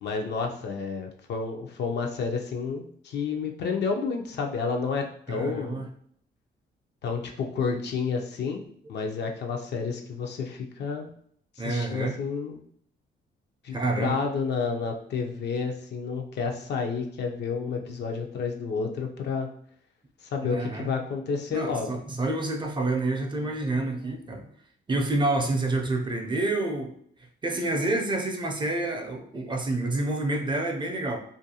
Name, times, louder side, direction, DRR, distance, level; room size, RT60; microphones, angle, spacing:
voice 1, 0.0-5.8 7.0-8.6 8.9-11.1 11.6-12.6 13.6-19.5 20.3-22.0, left 5 dB, 60° left, 3 dB, 0.5 m, -30 dB
voice 2, 5.3-5.9 11.6-12.2 13.7-14.2 20.4-20.9 21.5-24.5 24.9-26.9 27.4-31.2, right 2 dB, 25° right, 2 dB, 0.4 m, -28 dB
2.5 x 2.3 x 2.7 m, 0.64 s
cardioid pair, 90°, 20 cm